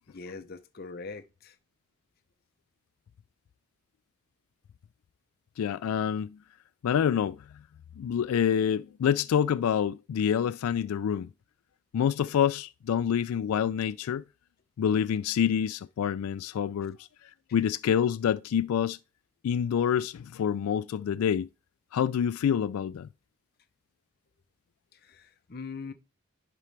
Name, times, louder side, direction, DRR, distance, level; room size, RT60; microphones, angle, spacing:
voice 1, 0.1-1.6 24.9-25.9, left 4 dB, 45° left, 0.6 m, -42 dB
voice 2, 5.6-6.4 6.8-7.4 8.0-11.3 11.9-14.2 14.8-17.1 17.5-19.0 19.4-21.5 21.9-23.1, left 8 dB, 85° left, 0.3 m, -27 dB
10.5 x 4.3 x 3.3 m
head